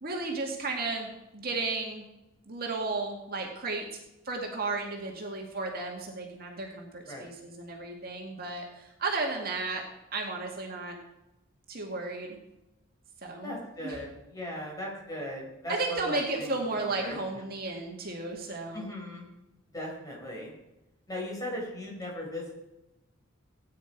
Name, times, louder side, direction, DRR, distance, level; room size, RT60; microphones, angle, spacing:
voice 1, 0.0-2.1 2.5-3.8 4.2-9.8 10.1-11.0 11.7-12.4 13.2-13.6 13.8-14.0 15.7-18.9, right 3 dB, 45° right, 1 dB, 2.0 m, -34 dB
voice 2, 13.4-16.6 16.8-17.2 18.7-19.2 19.7-20.5 21.1-22.5, left 1 dB, 15° left, -3 dB, 4.9 m, -38 dB
17.0 x 9.5 x 4.6 m, 0.95 s
head